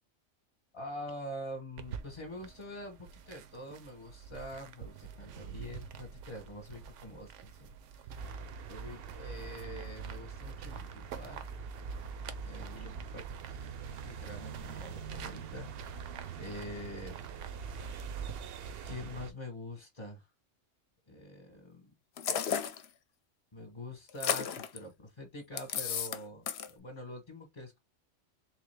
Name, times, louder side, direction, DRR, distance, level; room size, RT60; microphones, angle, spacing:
voice 1, 0.7-7.7 8.7-11.4 12.4-15.7 16.4-17.2 18.8-20.3 21.1-21.9 23.5-27.8, left 1 dB, 30° left, 0.9 m, -45 dB
sound 1, 1.8-18.3, right 7 dB, 85° right, 1.0 m, -48 dB
sound 2, 8.1-19.3, right 6 dB, 65° right, 0.7 m, -43 dB
sound 3, 22.2-22.8 24.1-24.8 25.6-26.2 26.5-26.7, left 8 dB, 65° left, 0.8 m, -33 dB
3.4 x 3.3 x 3.2 m
omnidirectional pair, 1.2 m